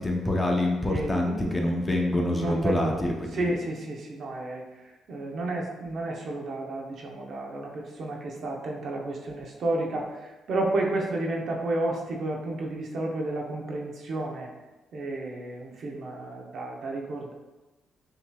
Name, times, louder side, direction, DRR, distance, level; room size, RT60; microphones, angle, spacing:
voice 1, 0.0-3.5, left 1 dB, 20° left, 1 dB, 0.7 m, -26 dB
voice 2, 0.9-1.6 2.3-3.0 3.3-4.6 5.1-14.5 14.9-17.3, right 2 dB, 60° right, 0 dB, 0.8 m, -31 dB
5.6 x 3.0 x 2.3 m, 1.1 s
cardioid pair, 90°, 0 cm